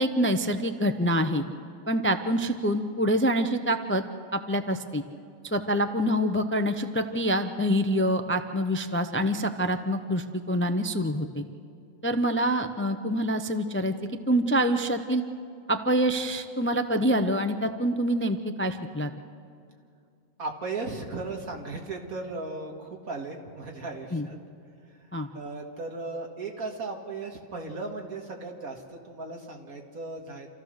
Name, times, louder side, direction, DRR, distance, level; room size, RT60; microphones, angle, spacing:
voice 1, 0.0-1.4 1.9-4.0 4.3-5.0 5.4-11.4 12.0-13.9 14.3-15.2 15.7-19.1 24.1-24.3 25.1-25.3, equal, 20° left, 8 dB, 0.3 m, -26 dB
voice 2, 20.4-24.4 25.0-25.1 25.3-30.5, right 3 dB, 85° right, 2 dB, 2.3 m, -36 dB
27.5 x 14.5 x 6.5 m, 2.4 s
omnidirectional pair, 1.5 m